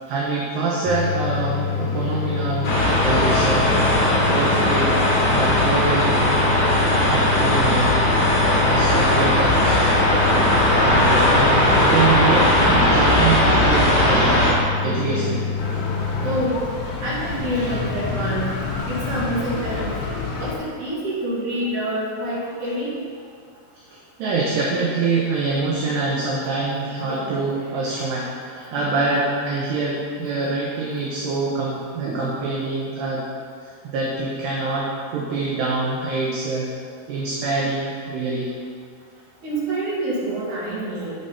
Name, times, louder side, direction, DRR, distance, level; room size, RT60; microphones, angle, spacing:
voice 1, 0.1-3.8 4.1-6.6 7.1-8.0 8.6-9.9 10.8-14.5 14.8-15.8 18.2-18.4 22.5-22.6 24.2-33.2 33.8-36.7 37.1-38.5, right 3 dB, 75° right, -4 dB, 2.7 m, -25 dB
sound 1, 0.9-16.4, left 5 dB, 85° left, 2.9 m, -26 dB
sound 2, 2.6-14.5, left 1 dB, 50° left, 2.1 m, -18 dB
sound 3, 15.6-20.5, left 4 dB, 70° left, 2.5 m, -28 dB
voice 2, 16.2-16.6 17.0-18.5 18.9-20.0 20.4-22.9 39.4-41.1, right 1 dB, 50° right, -8 dB, 3.1 m, -27 dB
8.9 x 6.7 x 4.2 m, 2.1 s
omnidirectional pair, 5.5 m